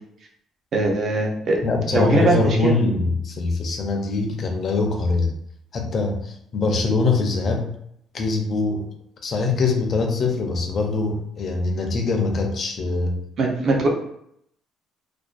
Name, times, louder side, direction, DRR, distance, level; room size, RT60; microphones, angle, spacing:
voice 1, 0.7-1.6 1.9-2.7 13.4-13.9, right 2 dB, 35° right, 0 dB, 0.4 m, -21 dB
voice 2, 1.6-5.3 5.7-7.7 8.1-8.9 9.2-13.1, left 3 dB, 35° left, 2 dB, 0.4 m, -23 dB
2.4 x 2.2 x 2.4 m, 0.73 s
cardioid pair, 170°, 0 cm